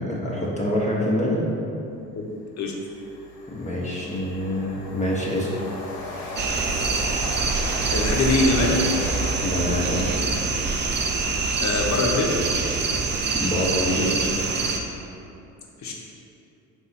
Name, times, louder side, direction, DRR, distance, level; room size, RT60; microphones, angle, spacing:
voice 1, 0.0-1.4 3.5-5.6 9.4-10.1 13.3-14.1, left 1 dB, 20° left, -5 dB, 0.8 m, -26 dB
Train, 2.1-2.2 2.6-13.0, left 1 dB, 90° left, 0.8 m, -38 dB
sound 1, 6.4-14.8, right 4 dB, 30° right, 0.5 m, -25 dB
voice 2, 7.9-8.7 11.6-12.4 15.8-15.9, left 3 dB, 45° left, -1 dB, 0.9 m, -23 dB
4.1 x 2.7 x 4.1 m, 2.7 s
hypercardioid pair, 60°, 38 cm